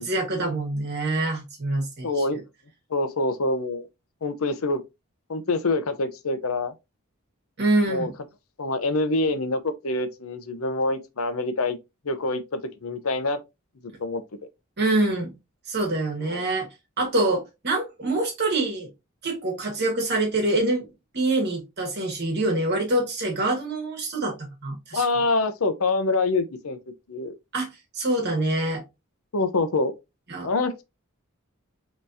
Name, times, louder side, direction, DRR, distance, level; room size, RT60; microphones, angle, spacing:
voice 1, 0.0-2.4 7.6-8.1 14.8-15.3 15.7-16.7 17.0-18.9 19.2-20.9 21.1-24.3 24.6-25.0 27.5-27.7 27.9-28.8 30.3-30.5, right 2 dB, 50° right, 1.5 m, -25 dB
voice 2, 2.0-2.4 2.9-3.9 4.2-4.8 5.3-6.7 7.9-8.1 8.6-11.8 12.0-13.4 14.0-14.2 16.2-16.4 24.9-26.8 27.1-27.3 29.3-29.9 30.4-30.8, left 2 dB, 85° left, 0.7 m, -25 dB
5.5 x 3.1 x 2.6 m
head